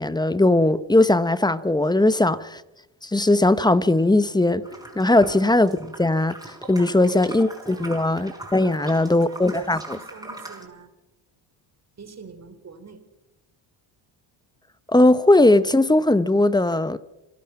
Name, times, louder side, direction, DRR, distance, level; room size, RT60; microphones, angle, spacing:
voice 1, 0.0-2.4 3.0-4.7 5.0-10.0 14.9-17.0, left 2 dB, 10° left, 0.9 m, -19 dB
sound 1, 4.6-10.7, right 1 dB, 5° right, 4.5 m, -41 dB
voice 2, 6.8-7.4 7.7-8.0 8.6-10.9 12.0-13.0, right 5 dB, 30° right, 3.8 m, -44 dB
27.0 x 19.0 x 5.9 m
cardioid pair, 100°, 49 cm